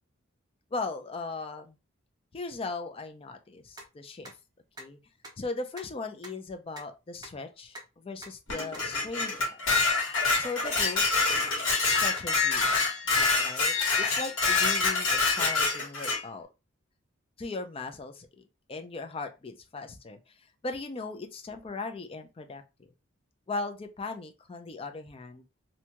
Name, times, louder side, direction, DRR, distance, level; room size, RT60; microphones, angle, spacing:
voice 1, 0.7-1.8 2.3-4.3 4.8-5.0 5.4-9.6 10.4-11.0 11.9-12.7 13.1-16.5 17.4-20.2 20.6-22.6 23.5-25.4, left 3 dB, 30° left, 0.4 m, -38 dB
sound 1, 3.8-3.9 4.2-4.3 4.7-4.8 5.2-5.3 5.7-5.9 6.2-6.3 6.8-6.9 7.2-7.3 7.7-7.8 8.2-8.3 8.7-8.8 9.2-9.3 9.7-9.8 10.2-10.3 10.7-10.8 11.2-11.3 11.7-11.8 12.2-12.3 12.7-12.8, right 1 dB, 20° right, 0.6 m, -44 dB
Dishes pots and pans, 8.5-16.2, left 4 dB, 80° left, 1.4 m, -26 dB
2.6 x 2.2 x 2.9 m
head